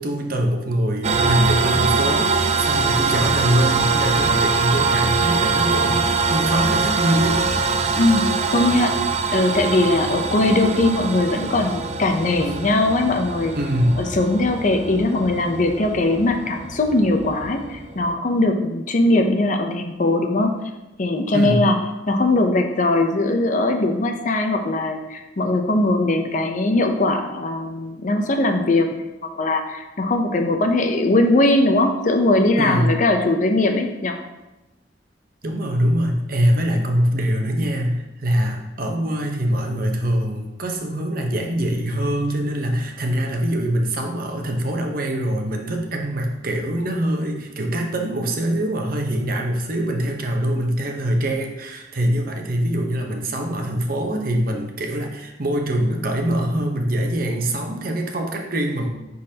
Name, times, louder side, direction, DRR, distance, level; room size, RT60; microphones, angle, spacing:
voice 1, 0.0-7.4 13.5-14.0 21.3-21.7 32.6-32.9 35.4-58.9, equal, 55° right, 2 dB, 0.9 m, -23 dB
sound 1, 1.0-18.1, right 4 dB, 40° right, 0.4 m, -23 dB
voice 2, 7.9-8.9 9.3-13.5 14.0-20.5 21.0-21.8 22.1-29.1 29.3-34.2, left 2 dB, 45° left, 4 dB, 0.6 m, -20 dB
10.0 x 4.0 x 2.8 m, 0.99 s
head